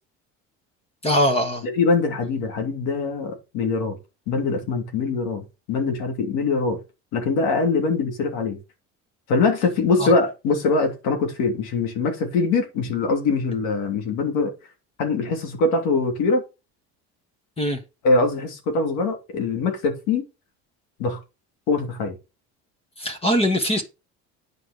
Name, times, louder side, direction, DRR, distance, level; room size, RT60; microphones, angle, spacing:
voice 1, 1.0-1.6 10.0-10.1 17.6-17.8 23.0-23.8, equal, 20° left, 1.5 m, -21 dB
voice 2, 1.6-4.0 4.3-6.8 7.1-8.6 9.3-14.5 15.0-16.4 18.0-20.2 21.0-21.2 21.7-22.1, left 3 dB, 85° left, 3.2 m, -23 dB
9.6 x 5.0 x 5.3 m
cardioid pair, 150°, 30 cm